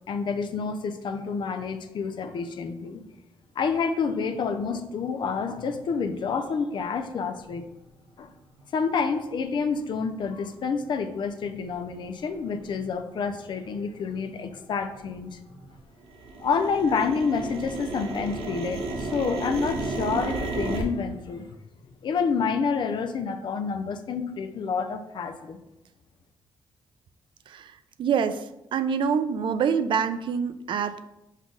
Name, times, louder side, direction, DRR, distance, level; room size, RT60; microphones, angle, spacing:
voice 1, 0.0-3.0 3.6-7.6 8.2-8.3 8.7-15.4 16.4-21.5 22.0-25.6, left 5 dB, 55° left, 8 dB, 0.4 m, -28 dB
sound 1, 10.0-10.1 10.7-10.8 11.4-11.7 12.2-12.3 12.5-13.1 13.4-15.7 16.0-20.8, right 2 dB, 75° right, 0.7 m, -33 dB
voice 2, 28.0-28.5 28.7-31.0, right 6 dB, 60° right, 11 dB, 0.3 m, -25 dB
5.4 x 2.4 x 3.7 m, 0.90 s
cardioid pair, 90°, 9 cm